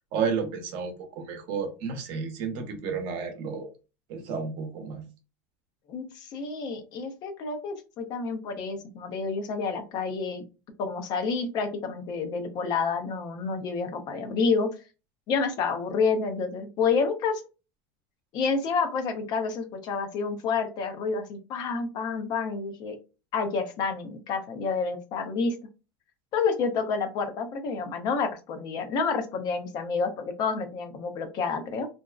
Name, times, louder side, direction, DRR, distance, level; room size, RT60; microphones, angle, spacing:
voice 1, 0.1-3.7 4.1-5.0, right 6 dB, 60° right, 0.7 m, -31 dB
voice 2, 5.9-10.4 10.8-14.7 15.3-17.4 18.3-23.0 23.3-25.5 26.3-31.9, left 5 dB, 50° left, 0.6 m, -29 dB
2.5 x 2.1 x 2.3 m
supercardioid pair, 115°, 9 cm